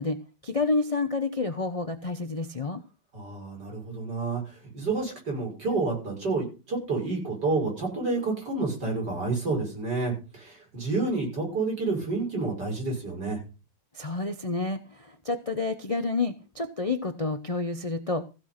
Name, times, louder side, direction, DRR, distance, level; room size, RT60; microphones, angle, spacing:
voice 1, 0.0-2.8 13.9-18.2, left 3 dB, 50° left, 9 dB, 0.4 m, -29 dB
voice 2, 3.1-13.4, right 3 dB, 65° right, 0 dB, 6.5 m, -29 dB
15.0 x 6.4 x 5.8 m, 0.32 s
omnidirectional pair, 2.0 m